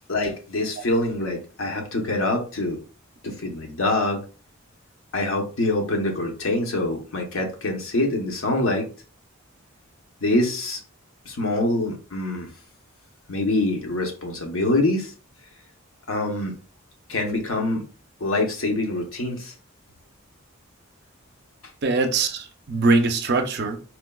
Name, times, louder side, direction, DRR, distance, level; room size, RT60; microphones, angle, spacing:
voice 1, 0.1-2.8 3.2-4.2 5.1-8.9 10.2-10.8 11.3-12.5 13.3-15.1 16.1-16.5 17.1-17.9 18.2-19.5, left 2 dB, 70° left, 0.8 m, -25 dB
voice 2, 21.8-23.8, right 3 dB, 50° right, 0.5 m, -22 dB
4.3 x 2.2 x 2.2 m
head